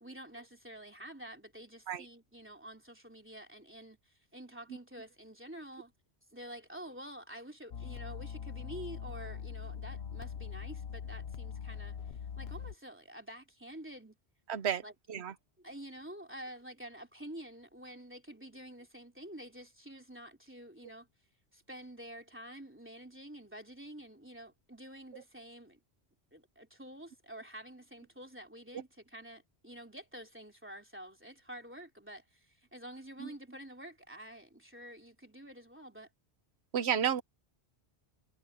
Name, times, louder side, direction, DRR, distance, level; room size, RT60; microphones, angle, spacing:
voice 1, 0.0-5.9 6.3-14.2 14.7-14.9 15.3-21.1 21.5-25.8 26.3-36.1, right 1 dB, 10° right, 3.3 m, -49 dB
sound 1, 7.7-12.7, left 7 dB, 70° left, 1.1 m, -42 dB
voice 2, 14.5-14.8 15.1-15.3 25.1-25.2 33.2-33.3 36.7-37.2, right 8 dB, 75° right, 1.1 m, -31 dB
omnidirectional pair, 1.1 m